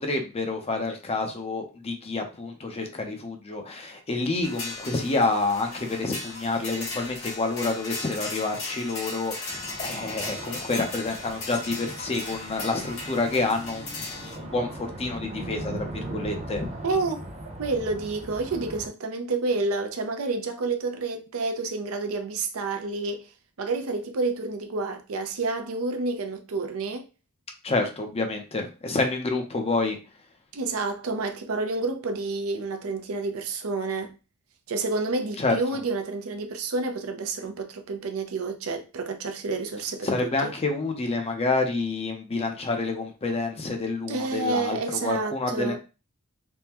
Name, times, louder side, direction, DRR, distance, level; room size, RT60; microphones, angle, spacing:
voice 1, 0.0-15.9 16.1-16.7 27.6-30.0 35.4-35.6 40.0-45.8, left 3 dB, 30° left, 0.5 m, -28 dB
sound 1, 4.4-14.4, left 3 dB, 65° left, 1.4 m, -37 dB
sound 2, 9.5-18.9, right 1 dB, 30° right, 0.6 m, -39 dB
voice 2, 16.8-17.2 17.6-23.3 23.6-27.0 30.5-34.1 34.7-40.5 44.1-45.8, right 3 dB, 75° right, 0.5 m, -29 dB
3.5 x 2.1 x 2.8 m
head